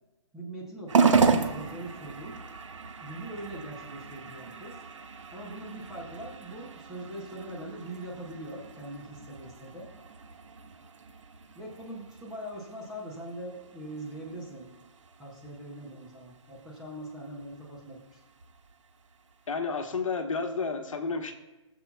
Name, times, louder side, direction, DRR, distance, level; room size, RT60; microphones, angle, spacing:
voice 1, 0.3-2.4 3.0-4.8 5.3-9.9 11.5-14.7 15.2-18.2, right 1 dB, 5° right, -3 dB, 0.5 m, -42 dB
sound 1, 0.9-19.5, right 5 dB, 70° right, 0.9 m, -34 dB
voice 2, 19.5-21.3, left 4 dB, 85° left, 6 dB, 1.2 m, -31 dB
20.5 x 7.2 x 2.3 m, 1.1 s
hypercardioid pair, 175°, 16 cm